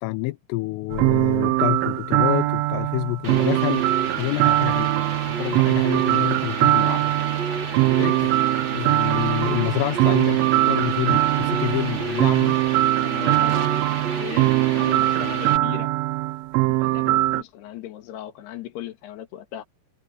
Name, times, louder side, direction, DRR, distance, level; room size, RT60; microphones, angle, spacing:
voice 1, 0.0-3.8 4.2-4.9 5.4-7.1 8.0-8.3 8.7-12.6, left 22 dB, 85° left, 3.2 m, -28 dB
sound 1, 0.9-17.4, right 17 dB, 80° right, 3.3 m, -21 dB
sound 2, 3.2-15.6, right 4 dB, 30° right, 3.3 m, -31 dB
voice 2, 13.0-13.8 14.1-15.9 16.6-19.6, left 12 dB, 60° left, 3.7 m, -37 dB
omnidirectional pair, 5.8 m